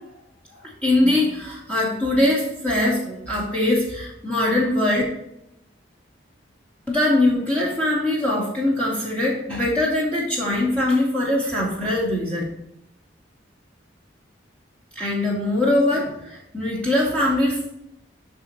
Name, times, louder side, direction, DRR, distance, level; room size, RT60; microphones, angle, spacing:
voice 1, 0.8-5.0 6.9-12.4 15.0-17.6, left 1 dB, 5° left, -6 dB, 2.1 m, -22 dB
13.5 x 4.5 x 3.0 m, 0.82 s
head